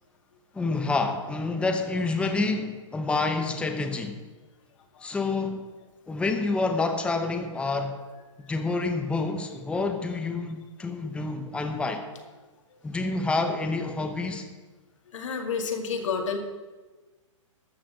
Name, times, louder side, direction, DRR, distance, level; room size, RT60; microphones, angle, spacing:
voice 1, 0.5-4.2 5.0-5.6 6.1-7.9 8.5-12.1 12.8-14.5, left 3 dB, 5° left, 5 dB, 1.0 m, -28 dB
voice 2, 15.1-16.4, left 5 dB, 65° left, 3 dB, 2.2 m, -30 dB
13.5 x 6.0 x 7.6 m, 1.2 s
hypercardioid pair, 135°, 17 cm